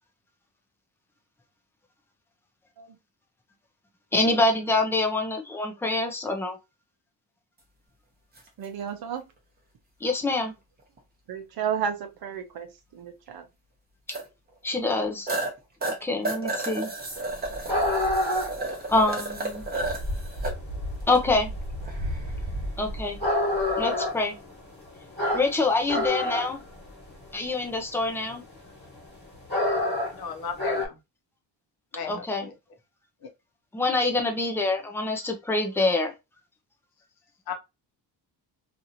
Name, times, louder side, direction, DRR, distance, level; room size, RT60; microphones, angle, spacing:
voice 1, 4.1-6.6 10.0-10.5 14.6-15.3 16.0-16.9 18.9-19.6 21.1-21.5 22.8-23.2 23.8-24.3 25.3-26.6 27.3-28.4 32.1-32.5 33.7-36.1, left 2 dB, 5° left, 0.4 m, -25 dB
sound 1, 8.4-8.5 11.0-11.1 14.1-14.2 14.7-14.8 15.3-15.5 15.8-20.5 21.0-21.2 21.8-22.3 25.8-26.0, right 2 dB, 25° right, 0.7 m, -32 dB
voice 2, 8.6-9.3 11.3-13.4, right 8 dB, 60° right, 0.7 m, -32 dB
sound 2, 17.1-30.9, left 1 dB, 25° left, 1.3 m, -29 dB
voice 3, 30.1-31.0 31.9-32.5 33.2-33.3 37.5-37.6, left 6 dB, 60° left, 0.8 m, -35 dB
2.8 x 2.5 x 2.7 m
cardioid pair, 165°, 42 cm